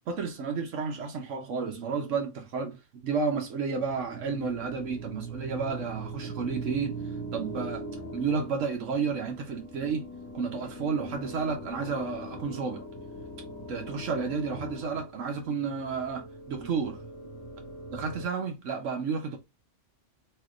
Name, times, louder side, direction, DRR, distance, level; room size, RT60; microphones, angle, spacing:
voice 1, 0.1-7.0 7.3-7.9 8.1-10.1 10.3-12.9 13.7-17.0 17.9-19.4, right 5 dB, 85° right, 1.2 m, -31 dB
sound 1, 3.8-18.2, right 2 dB, 15° left, 0.7 m, -41 dB
3.2 x 2.9 x 2.4 m
omnidirectional pair, 1.3 m